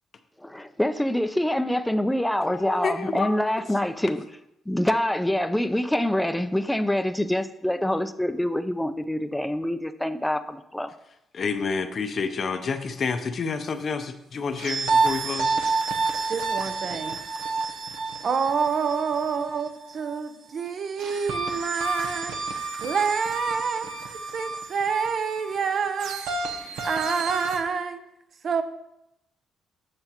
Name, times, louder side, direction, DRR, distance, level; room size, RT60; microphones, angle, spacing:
voice 1, 0.5-4.2 4.7-10.9, left 1 dB, 5° left, 0.5 m, -25 dB
voice 2, 2.5-3.6 11.3-15.6, left 5 dB, 50° left, 0.7 m, -29 dB
sound 1, 14.6-20.2 21.0-27.6, right 4 dB, 90° right, 0.9 m, -29 dB
voice 3, 16.3-17.2 18.2-22.4 22.8-26.2 26.8-28.0 28.4-28.6, right 6 dB, 55° right, 0.6 m, -27 dB
7.8 x 6.7 x 3.0 m
cardioid pair, 90°, 0 cm